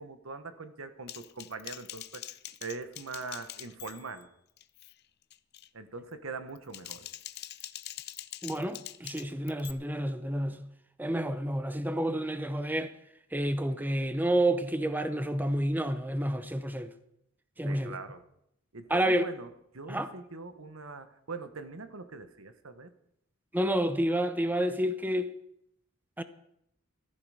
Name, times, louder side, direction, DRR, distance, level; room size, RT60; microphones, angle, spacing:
voice 1, 0.0-2.3 2.6-4.3 5.7-7.1 17.6-18.2 18.7-19.5 19.7-22.9, right 4 dB, 80° right, 1.3 m, -42 dB
Typing, 1.1-4.2 4.6-4.9 5.3-5.7 6.5-9.7, left 13 dB, 50° left, 0.6 m, -44 dB
voice 2, 8.4-10.7 11.0-12.9 13.3-16.9 17.6-18.0 18.9-19.3 19.9-20.1 23.5-25.3 26.2-26.3, right 1 dB, 10° right, 0.7 m, -29 dB
14.5 x 14.0 x 5.0 m
head